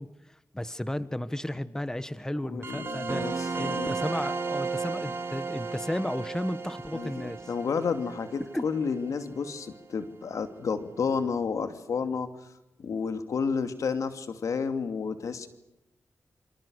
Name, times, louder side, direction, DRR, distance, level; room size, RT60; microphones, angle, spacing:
voice 1, 0.0-3.2 3.6-7.5 8.4-8.7, left 1 dB, 10° left, 14 dB, 1.5 m, -34 dB
voice 2, 2.4-4.0 6.9-12.3 12.8-15.5, left 5 dB, 80° left, 9 dB, 2.6 m, -31 dB
sound 1, 2.6-9.7, right 4 dB, 50° right, 4.9 m, -34 dB
27.5 x 26.0 x 6.5 m, 0.88 s
cardioid pair, 55°, 5 cm